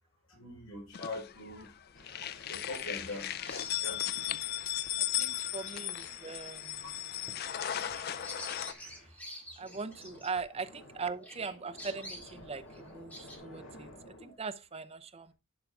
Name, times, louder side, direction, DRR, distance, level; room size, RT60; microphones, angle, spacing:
voice 1, 0.3-1.7 2.5-3.3 3.8-4.0, left 2 dB, 90° left, 4.8 m, -42 dB
sound 1, 0.9-1.7 2.0-8.7, left 12 dB, 50° left, 0.4 m, -36 dB
sound 2, 1.9-9.1 9.6-14.4, left 1 dB, 70° left, 2.7 m, -54 dB
Bird vocalization bird call bird song, 2.5-10.9 11.2-13.4, equal, 5° left, 2.1 m, -50 dB
voice 2, 5.0-6.8 9.0-9.1 9.6-15.3, right 4 dB, 30° right, 0.6 m, -41 dB
11.0 x 4.6 x 3.5 m
head